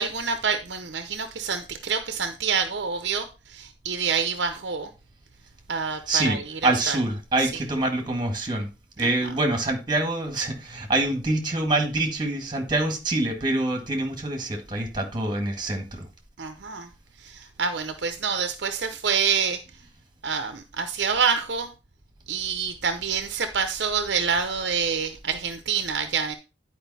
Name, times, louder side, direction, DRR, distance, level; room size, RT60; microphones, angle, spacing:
voice 1, 0.0-4.9 5.7-7.0 9.0-9.1 16.4-16.9 17.2-19.6 20.2-21.7 22.3-26.3, right 6 dB, 60° right, 0.7 m, -27 dB
voice 2, 6.1-8.7 9.0-16.1, right 2 dB, 25° right, 1.7 m, -25 dB
10.0 x 4.9 x 4.1 m
head